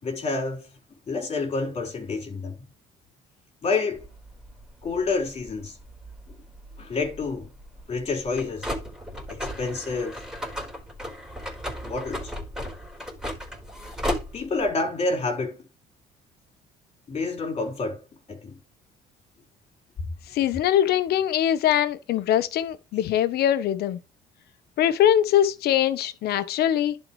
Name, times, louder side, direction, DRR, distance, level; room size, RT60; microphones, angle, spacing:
voice 1, 0.0-0.7 1.1-2.6 3.6-4.1 4.8-5.8 6.8-7.5 7.9-8.7 9.3-10.2 11.8-12.3 14.3-15.6 17.1-18.0 18.3-18.6, left 3 dB, 40° left, 4.1 m, -28 dB
sound 1, 4.0-14.7, equal, 5° right, 4.4 m, -36 dB
voice 2, 20.3-24.0 24.8-27.0, left 11 dB, 70° left, 1.0 m, -22 dB
11.5 x 4.6 x 3.2 m
cardioid pair, 110°, 17 cm